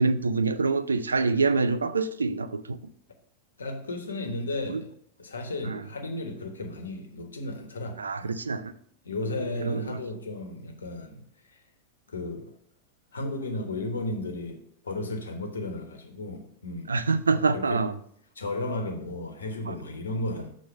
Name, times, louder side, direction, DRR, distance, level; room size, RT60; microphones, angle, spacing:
voice 1, 0.0-2.6 4.7-4.8 5.7-5.8 8.0-8.7 9.6-9.8 16.9-17.9 19.7-19.8, right 4 dB, 75° right, 0.4 m, -25 dB
voice 2, 3.6-4.9 5.2-8.4 9.0-11.2 12.1-12.5 13.1-16.9 17.3-17.8 18.3-20.5, left 2 dB, 70° left, 1.1 m, -34 dB
6.7 x 4.1 x 5.4 m
figure-of-eight pair, 90°, 0 cm